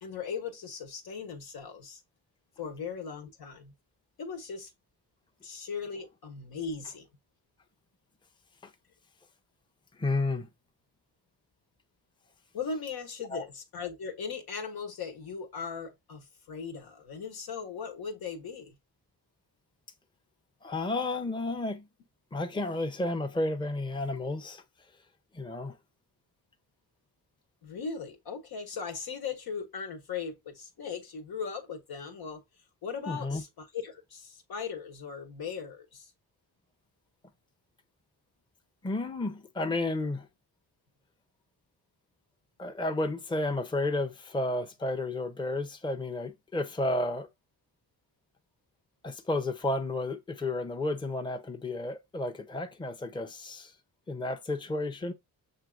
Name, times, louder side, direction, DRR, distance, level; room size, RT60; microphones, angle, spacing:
voice 1, 0.0-2.0 2.6-3.7 4.2-4.7 5.4-7.0 12.5-18.7 27.6-32.4 32.8-36.1, left 6 dB, 80° left, 1.4 m, -38 dB
voice 2, 10.0-10.5 13.3-13.4 20.6-21.9 22.3-24.6 25.3-25.8 33.1-33.4 38.8-40.3 42.6-47.3 49.0-53.7 54.1-55.1, left 2 dB, 10° left, 0.7 m, -32 dB
6.6 x 2.8 x 2.4 m
cardioid pair, 85°, 37 cm